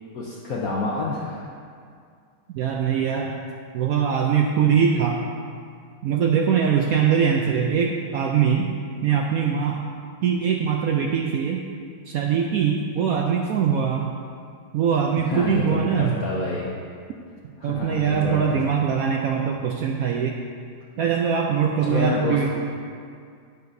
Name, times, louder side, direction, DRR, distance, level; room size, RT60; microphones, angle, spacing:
voice 1, 0.1-1.5 15.1-16.8 17.6-18.6 21.8-22.5, left 3 dB, 60° left, -4 dB, 1.1 m, -28 dB
voice 2, 2.5-3.4 3.7-5.2 6.0-8.7 9.0-9.9 10.2-11.7 12.1-14.1 14.7-16.2 17.6-20.4 21.0-22.5, right 7 dB, 75° right, 0 dB, 0.8 m, -22 dB
11.5 x 6.5 x 2.7 m, 2.2 s
omnidirectional pair, 1.9 m